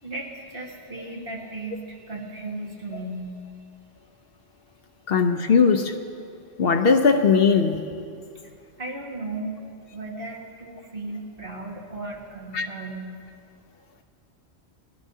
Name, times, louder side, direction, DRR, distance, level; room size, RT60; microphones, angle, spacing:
voice 1, 0.0-3.3 8.8-9.6 9.9-13.1, right 2 dB, 55° right, -2 dB, 1.9 m, -35 dB
voice 2, 5.1-5.9 6.6-7.8 12.5-12.7, left 5 dB, 65° left, 7 dB, 0.9 m, -19 dB
19.5 x 13.5 x 2.8 m, 2.4 s
omnidirectional pair, 1.1 m